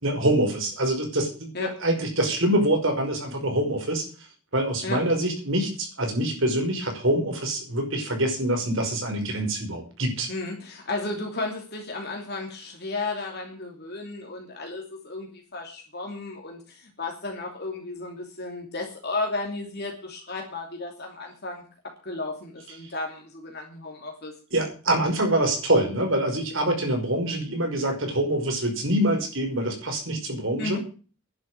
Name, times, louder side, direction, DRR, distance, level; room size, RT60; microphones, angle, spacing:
voice 1, 0.0-4.0 4.5-10.3 24.5-30.8, right 1 dB, 60° right, 3 dB, 5.5 m, -25 dB
voice 2, 10.3-21.6 22.0-24.3 30.6-30.8, left 3 dB, 45° left, 1 dB, 2.9 m, -33 dB
11.0 x 8.1 x 9.9 m, 0.37 s
head